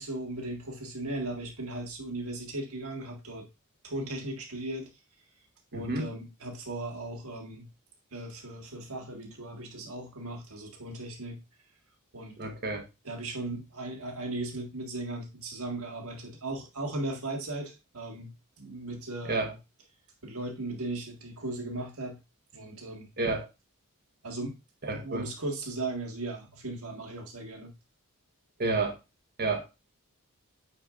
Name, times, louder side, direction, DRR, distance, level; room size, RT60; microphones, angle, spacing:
voice 1, 0.0-3.5 3.8-4.9 5.7-7.7 8.1-11.4 12.1-12.4 13.0-19.6 20.2-22.2 22.5-23.1 24.2-24.6 24.9-27.7, right 2 dB, 70° right, 3 dB, 1.7 m, -37 dB
voice 2, 5.7-6.1 12.4-12.8 19.2-19.5 23.2-23.5 24.8-25.3 28.6-29.0 29.4-29.6, right 3 dB, 45° right, 4 dB, 1.2 m, -30 dB
8.8 x 4.4 x 2.5 m, 0.25 s
head